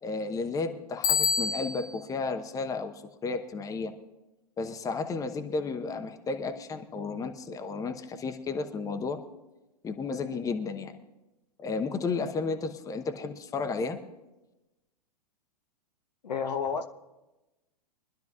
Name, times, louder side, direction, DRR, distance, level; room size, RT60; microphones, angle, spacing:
voice 1, 0.0-3.9 4.6-9.2 9.8-10.9 11.6-14.0, left 4 dB, 15° left, 7 dB, 0.9 m, -33 dB
Bicycle bell, 1.0-2.0, left 6 dB, 40° left, 1.5 m, -27 dB
voice 2, 16.2-16.9, left 6 dB, 75° left, 6 dB, 1.1 m, -30 dB
23.5 x 11.5 x 2.4 m, 1.0 s
figure-of-eight pair, 105°, 21 cm